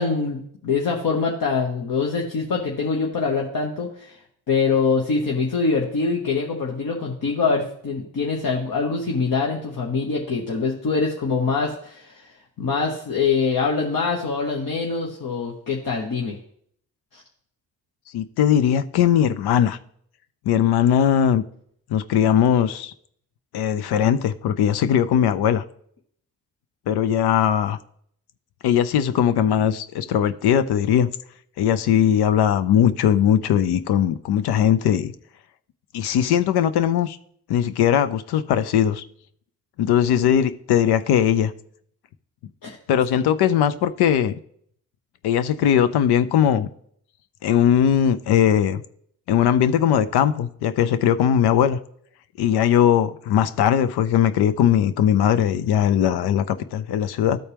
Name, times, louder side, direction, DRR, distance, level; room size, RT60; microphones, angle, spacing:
voice 1, 0.0-4.2 4.5-12.3 12.6-16.4 17.1-17.2 42.6-42.8, left 4 dB, 60° left, 0 dB, 1.2 m, -24 dB
voice 2, 18.1-19.8 20.5-21.4 21.9-22.9 23.5-25.6 26.9-27.8 28.6-31.1 31.6-35.1 35.9-37.2 37.5-39.0 39.8-41.5 42.9-44.3 45.2-46.7 47.4-48.8 49.3-51.8 52.4-57.4, left 9 dB, 75° left, 12 dB, 0.6 m, -19 dB
13.0 x 4.3 x 3.4 m, 0.65 s
supercardioid pair, 45°, 39 cm